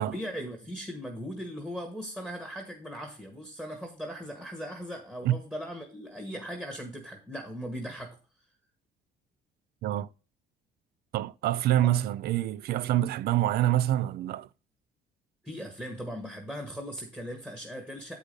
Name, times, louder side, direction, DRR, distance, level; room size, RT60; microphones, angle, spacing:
voice 1, 0.0-8.2 11.8-11.9 15.4-18.2, equal, 10° right, 1.5 m, -39 dB
voice 2, 11.1-14.5, right 13 dB, 65° right, 0.4 m, -26 dB
8.2 x 5.1 x 5.2 m
cardioid pair, 110°, 17 cm